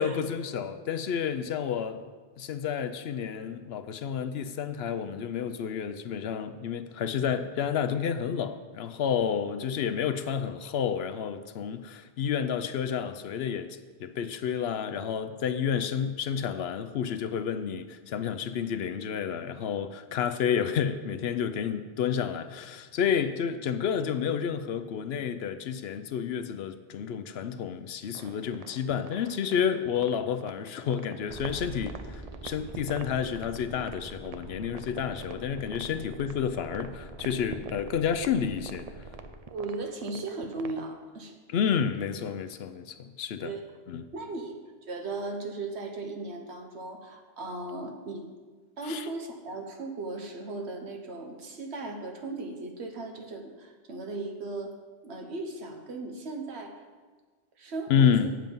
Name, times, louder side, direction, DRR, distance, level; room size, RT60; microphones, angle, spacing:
voice 1, 0.0-2.0 2.4-39.1 41.5-43.5 43.9-44.1 48.8-49.1 57.9-58.3, left 7 dB, 70° left, 10 dB, 0.8 m, -30 dB
sound 1, 28.1-40.9, right 6 dB, 50° right, 0.5 m, -45 dB
sound 2, 31.3-39.3, right 2 dB, 30° right, 1.1 m, -45 dB
voice 2, 39.5-41.3 43.4-43.6 44.1-44.6 44.9-48.3 48.8-54.8 55.0-56.8 57.6-58.3, right 3 dB, 70° right, 4 dB, 1.4 m, -37 dB
8.8 x 7.5 x 5.4 m, 1.4 s
omnidirectional pair, 1.2 m